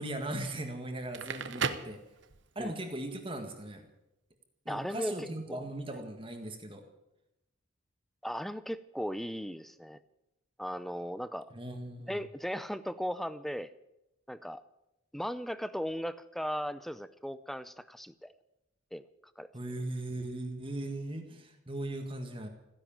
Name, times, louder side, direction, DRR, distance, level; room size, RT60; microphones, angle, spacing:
voice 1, 0.0-2.0 2.6-3.9 4.7-6.8 11.5-12.2 19.5-22.5, right 1 dB, 25° right, 4 dB, 1.8 m, -38 dB
Crackle, 0.9-2.7, right 6 dB, 60° right, 0.9 m, -36 dB
voice 2, 4.7-5.6 8.2-10.0 10.6-11.5 12.1-13.7 14.3-14.6 15.1-18.3 18.9-19.1 19.4-19.5, equal, ahead, 15 dB, 0.5 m, -37 dB
15.5 x 10.5 x 8.8 m, 0.89 s
head